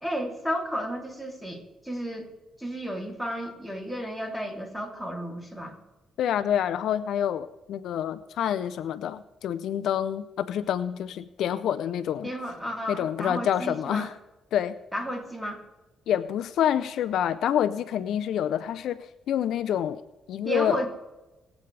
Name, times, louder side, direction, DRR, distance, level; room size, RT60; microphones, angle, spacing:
voice 1, 0.0-2.3 2.6-5.8 12.2-14.1 14.9-15.6 20.4-20.9, equal, 5° right, 1 dB, 3.0 m, -33 dB
voice 2, 6.2-12.3 12.9-14.1 14.5-14.8 16.1-20.0 20.3-20.8, left 10 dB, 75° left, 12 dB, 0.5 m, -27 dB
22.0 x 8.2 x 3.3 m, 1.0 s
cardioid pair, 90°, 0 cm